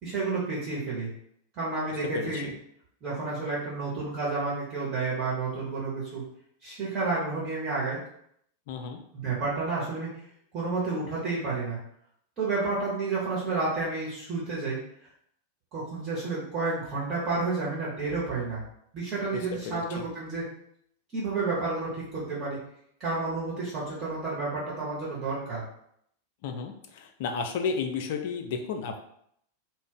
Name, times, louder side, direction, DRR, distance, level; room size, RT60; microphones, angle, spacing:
voice 1, 0.0-1.1 1.6-2.5 3.0-6.2 6.6-8.0 9.1-10.1 10.5-11.8 12.4-14.8 15.7-18.6 18.9-20.4 21.1-22.6 23.0-25.6, right 3 dB, 35° right, -7 dB, 1.1 m, -30 dB
voice 2, 2.1-2.5 8.7-9.0 19.6-20.0 26.4-29.0, left 5 dB, 50° left, 5 dB, 0.4 m, -32 dB
2.5 x 2.1 x 3.9 m, 0.70 s
figure-of-eight pair, 90°, 0 cm